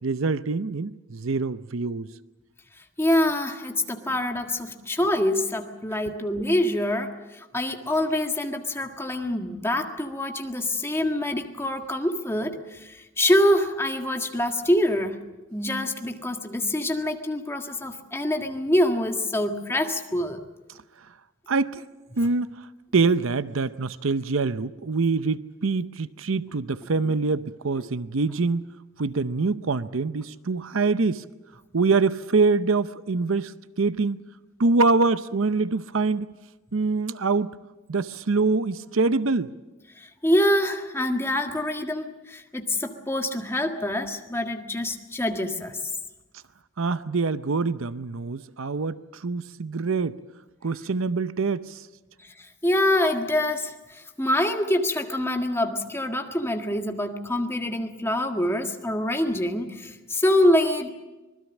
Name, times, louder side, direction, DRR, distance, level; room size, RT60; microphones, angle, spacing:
voice 1, 0.0-2.1 21.5-21.8 22.2-28.7 29.0-31.2 31.7-34.2 34.6-36.3 36.7-37.5 37.9-39.5 46.8-50.2 50.6-51.9, right 4 dB, 65° right, 14 dB, 0.7 m, -25 dB
voice 2, 3.0-15.2 15.5-20.4 27.0-27.1 40.0-45.8 52.6-60.9, left 1 dB, 10° left, 4 dB, 1.7 m, -25 dB
25.5 x 20.5 x 7.2 m, 1.1 s
head